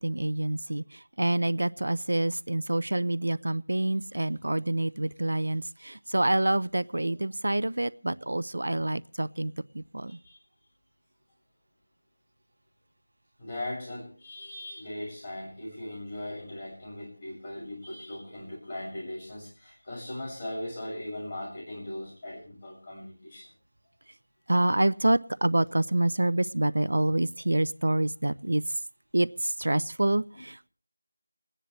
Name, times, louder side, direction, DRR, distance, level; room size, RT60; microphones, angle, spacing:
voice 1, 0.0-10.2 24.5-28.6 29.1-30.7, right 1 dB, 75° right, 16 dB, 0.6 m, -27 dB
voice 2, 13.4-23.5, left 1 dB, 25° left, -4 dB, 6.6 m, -39 dB
29.0 x 10.0 x 3.2 m, 0.35 s
figure-of-eight pair, 175°, 0 cm